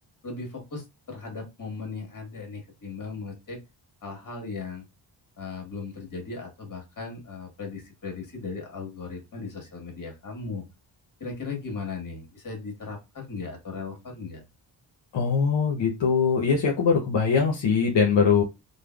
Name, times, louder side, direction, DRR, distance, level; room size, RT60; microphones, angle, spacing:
voice 1, 0.2-3.6 4.0-4.8 5.4-10.6 11.2-14.4, left 4 dB, 45° left, 1 dB, 1.4 m, -37 dB
voice 2, 15.1-18.4, left 6 dB, 70° left, -2 dB, 0.7 m, -22 dB
3.2 x 2.1 x 2.2 m, 0.25 s
cardioid pair, 55°, 46 cm